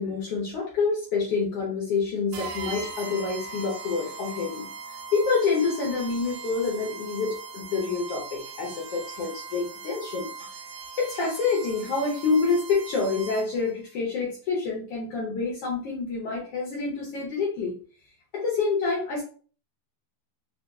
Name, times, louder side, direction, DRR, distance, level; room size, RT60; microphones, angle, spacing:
voice 1, 0.0-10.6 11.0-17.8 18.3-19.2, left 4 dB, 70° left, -3 dB, 1.5 m, -27 dB
sound 1, 2.3-13.7, right 4 dB, 85° right, 2.1 m, -40 dB
4.5 x 2.6 x 2.3 m, 0.41 s
omnidirectional pair, 3.4 m